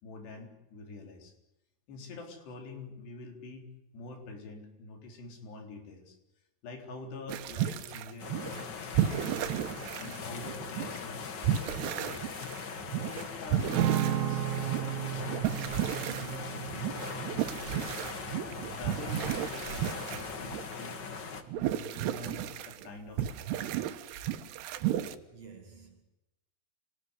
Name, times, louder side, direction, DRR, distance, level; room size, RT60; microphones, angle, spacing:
voice 1, 0.0-1.3 1.9-3.7 3.9-6.2 6.6-8.7 9.0-9.6 10.0-12.3 13.1-14.4 14.9-15.7 16.1-18.2 18.7-21.0 21.5-23.9, left 3 dB, 85° left, 6.0 m, -46 dB
sound 1, 7.3-8.7 8.9-11.0 11.4-20.8 21.4-22.9 23.2-25.2, right 11 dB, 80° right, 3.3 m, -34 dB
sound 2, 8.2-21.4, left 5 dB, 50° left, 1.3 m, -40 dB
Acoustic guitar / Strum, 13.7-18.2, right 11 dB, 65° right, 2.0 m, -33 dB
voice 2, 24.9-26.0, right 5 dB, 45° right, 3.0 m, -53 dB
28.0 x 19.0 x 9.8 m
omnidirectional pair, 4.7 m